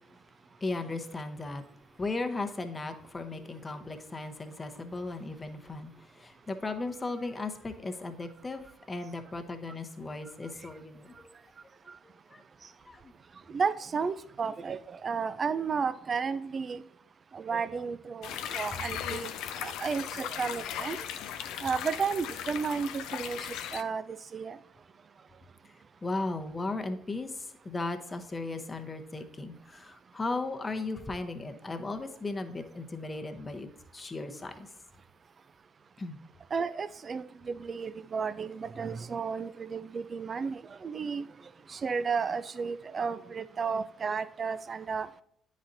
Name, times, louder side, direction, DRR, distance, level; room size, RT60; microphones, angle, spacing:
voice 1, 0.6-1.6 1.9-11.1 12.3-12.4 12.8-13.1 18.7-18.8 25.6-25.7 26.0-34.7 36.0-36.2, left 3 dB, 25° left, 6 dB, 0.9 m, -36 dB
voice 2, 13.5-16.8 17.3-19.3 19.6-21.1 21.6-24.0 24.3-24.6 36.5-41.2 41.7-45.1, right 5 dB, 40° right, 15 dB, 0.3 m, -33 dB
sound 1, 18.2-23.8, left 9 dB, 70° left, 0.4 m, -37 dB
10.0 x 4.2 x 2.6 m, 0.68 s
hypercardioid pair, 55°, 0 cm